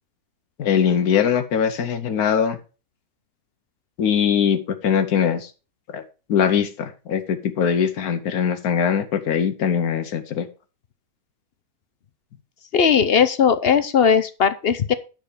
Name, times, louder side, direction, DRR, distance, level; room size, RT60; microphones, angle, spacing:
voice 1, 0.6-2.6 4.0-5.5 5.9-6.0 6.3-10.5, left 7 dB, 75° left, 9 dB, 1.3 m, -21 dB
voice 2, 12.7-14.9, left 7 dB, 55° left, 12 dB, 0.7 m, -18 dB
9.3 x 6.5 x 4.9 m, 0.33 s
omnidirectional pair, 1.6 m